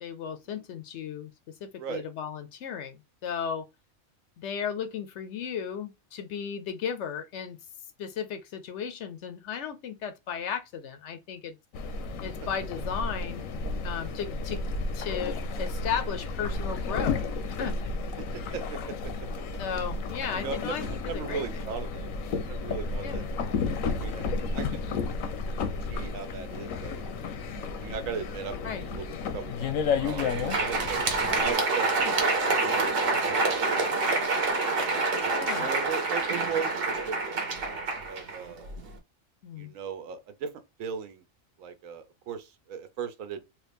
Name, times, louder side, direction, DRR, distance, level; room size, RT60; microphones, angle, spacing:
voice 1, 0.0-1.3 1.6-3.6 4.4-7.6 8.0-11.6 12.2-13.5 13.8-14.6 14.9-17.2 17.5-17.8 19.6-21.4 23.0-23.2 28.6-28.8 32.0-32.1 35.3-35.7 39.4-39.7, left 7 dB, 65° left, 0.8 m, -35 dB
sound 1, 11.7-31.5, left 4 dB, 85° left, 1.1 m, -32 dB
voice 2, 20.3-22.1 22.4-23.3 23.9-25.0 25.9-27.4 27.7-29.0 29.3-30.3 30.6-31.0 31.3-32.3 32.6-32.9 33.2-34.9 35.6-37.1 37.6-37.8 38.1-38.7 39.6-40.5 40.8-41.2 41.6-43.4, right 6 dB, 80° right, 1.0 m, -38 dB
Crowd, 29.9-38.9, right 3 dB, 50° right, 0.9 m, -27 dB
3.2 x 2.5 x 3.3 m
omnidirectional pair, 1.4 m